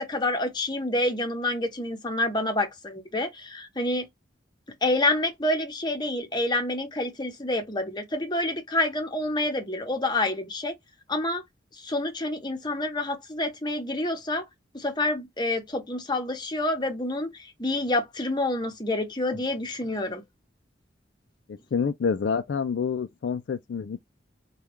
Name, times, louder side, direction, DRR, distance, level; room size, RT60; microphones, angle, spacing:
voice 1, 0.0-4.1 4.8-10.7 11.1-11.4 11.8-14.4 14.7-20.2, left 1 dB, 25° left, 0.8 m, -28 dB
voice 2, 21.7-24.0, left 6 dB, 60° left, 0.3 m, -27 dB
3.5 x 2.3 x 3.0 m
head